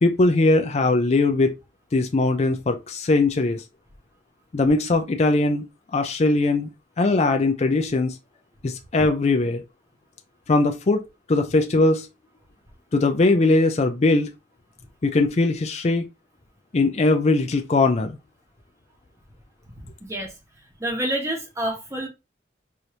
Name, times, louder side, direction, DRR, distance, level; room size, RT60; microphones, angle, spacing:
voice 1, 0.0-1.5 1.9-3.6 4.5-5.6 5.9-6.7 7.0-8.2 8.6-9.6 10.5-11.0 11.3-12.1 12.9-14.3 15.0-16.1 16.7-18.2, left 2 dB, 35° left, 0.4 m, -20 dB
voice 2, 19.8-20.3 20.8-22.1, right 1 dB, 15° right, 1.0 m, -28 dB
4.8 x 2.6 x 2.9 m
head